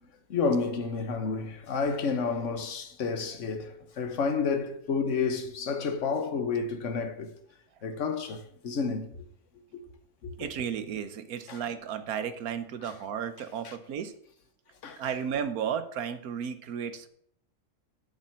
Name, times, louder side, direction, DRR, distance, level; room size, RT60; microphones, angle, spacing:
voice 1, 0.3-7.3 7.8-9.1 9.7-9.8 10.2-10.3 11.5-11.6 12.8-12.9 13.6-13.8 14.8-15.0, left 5 dB, 60° left, 1.4 m, -30 dB
voice 2, 10.4-14.1 15.0-17.1, right 8 dB, 85° right, 1.4 m, -33 dB
7.7 x 6.6 x 7.4 m
omnidirectional pair, 1.5 m